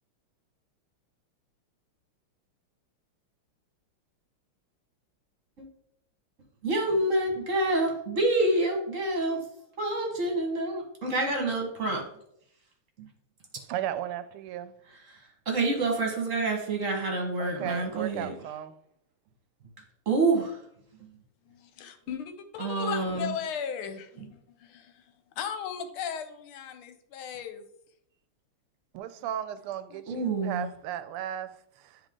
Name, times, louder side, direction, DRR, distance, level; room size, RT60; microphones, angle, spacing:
voice 1, 6.6-9.4 9.8-12.0 13.0-13.1 15.1-15.2 15.4-18.3 20.0-20.6 22.6-23.3 30.1-30.7, right 2 dB, 40° right, 1.6 m, -27 dB
voice 2, 13.6-14.7 17.4-18.8 28.9-32.0, right 11 dB, 90° right, 1.5 m, -35 dB
voice 3, 21.4-27.7 29.9-30.0, left 8 dB, 80° left, 1.6 m, -37 dB
10.0 x 3.4 x 3.7 m
omnidirectional pair, 2.4 m